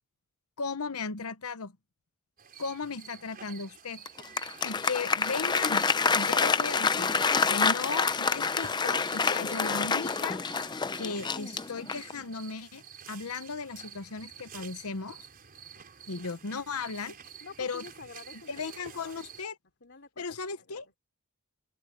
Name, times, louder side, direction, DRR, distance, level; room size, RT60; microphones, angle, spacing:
voice 1, 0.6-1.7 2.6-4.0 4.6-5.9 6.1-7.1 7.5-10.4 11.0-15.3 16.1-17.2 17.6-17.8 18.5-19.5 20.2-20.9, left 4 dB, 85° left, 1.0 m, -36 dB
sound 1, 2.4-19.4, right 7 dB, 45° right, 5.3 m, -50 dB
Applause, 4.1-12.2, left 5 dB, 20° left, 0.5 m, -27 dB
voice 2, 17.4-19.1 19.8-20.3 20.6-21.0, left 4 dB, 55° left, 3.4 m, -49 dB
open air
head